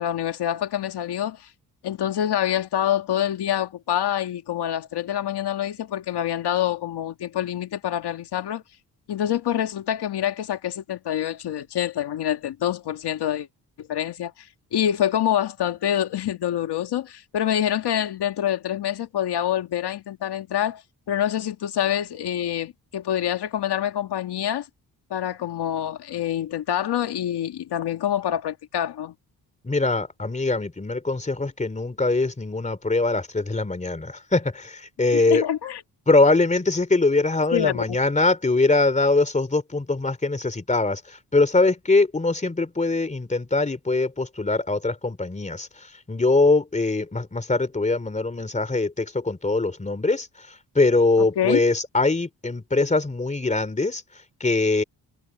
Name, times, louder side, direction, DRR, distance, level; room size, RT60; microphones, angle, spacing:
voice 1, 0.0-1.5 1.8-8.6 9.1-13.5 13.8-14.3 14.7-20.8 21.1-24.7 25.1-29.1 35.1-35.8 37.5-37.8 51.2-51.6, left 10 dB, 80° left, 1.9 m, -26 dB
voice 2, 29.6-35.4 36.1-54.0 54.4-54.8, left 3 dB, 20° left, 3.1 m, -22 dB
cardioid pair, 100°, 39 cm